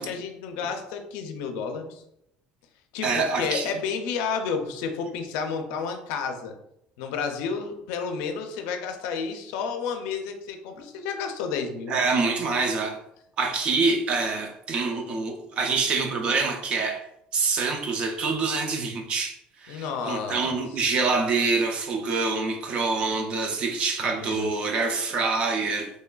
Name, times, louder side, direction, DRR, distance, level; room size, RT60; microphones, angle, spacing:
voice 1, 0.0-2.0 2.9-6.5 7.0-12.0 19.7-20.8 24.0-24.5, left 5 dB, 85° left, 5 dB, 0.4 m, -31 dB
voice 2, 3.0-3.7 11.9-13.0 13.4-17.0 17.3-19.4 19.6-25.9, right 4 dB, 35° right, 4 dB, 0.4 m, -26 dB
3.1 x 2.3 x 2.2 m, 0.78 s
cardioid pair, 160°, 3 cm